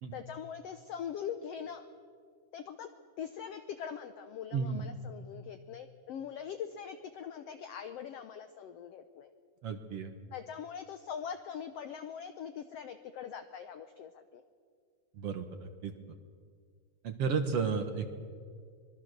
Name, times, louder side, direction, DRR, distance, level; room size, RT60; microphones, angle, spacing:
voice 1, 0.1-1.9 2.5-2.9 3.2-9.3 10.3-14.4, left 8 dB, 75° left, 9 dB, 1.4 m, -42 dB
voice 2, 4.5-4.9 9.6-10.1 15.1-15.9 17.0-18.1, right 5 dB, 55° right, 7 dB, 2.0 m, -33 dB
25.0 x 21.5 x 6.6 m, 2.1 s
omnidirectional pair, 3.7 m